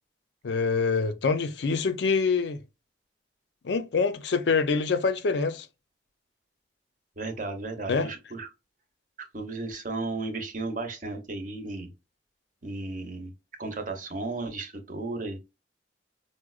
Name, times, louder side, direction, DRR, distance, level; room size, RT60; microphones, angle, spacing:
voice 1, 0.4-2.6 3.6-5.7 7.9-8.1, left 4 dB, 70° left, 0.5 m, -25 dB
voice 2, 7.2-8.5 9.2-11.9 12.6-13.3 13.6-15.4, right 3 dB, 45° right, 0.8 m, -34 dB
4.8 x 2.1 x 2.3 m
head